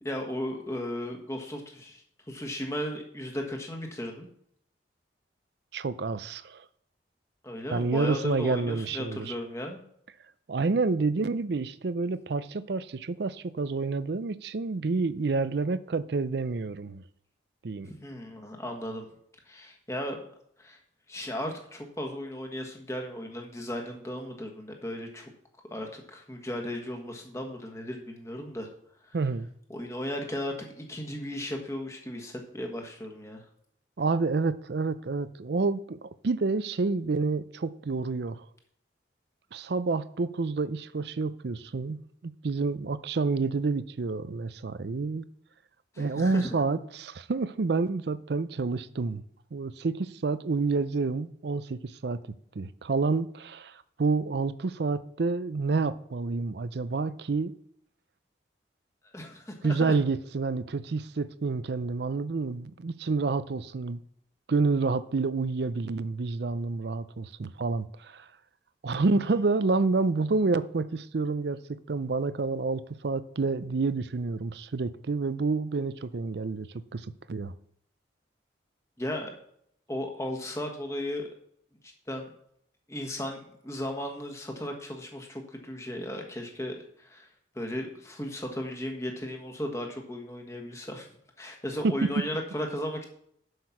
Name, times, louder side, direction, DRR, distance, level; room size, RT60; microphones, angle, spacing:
voice 1, 0.0-4.3 7.4-9.8 17.8-19.1 19.5-20.2 20.6-20.8 21.1-25.3 25.6-28.7 29.0-29.2 29.7-33.4 45.9-46.6 59.1-59.9 79.0-79.3 79.9-81.2 81.8-82.3 82.9-87.3 87.5-91.1 91.4-93.0, left 1 dB, 15° left, 1.4 m, -36 dB
voice 2, 5.7-6.6 7.7-9.3 10.5-17.0 17.6-17.9 29.1-29.5 34.0-38.4 39.5-42.0 42.2-45.3 46.0-49.2 49.5-52.2 52.5-57.5 59.6-64.0 64.5-68.3 68.8-76.7 76.9-77.5 91.8-91.9, right 3 dB, 60° right, 0.5 m, -29 dB
7.9 x 6.6 x 5.9 m
head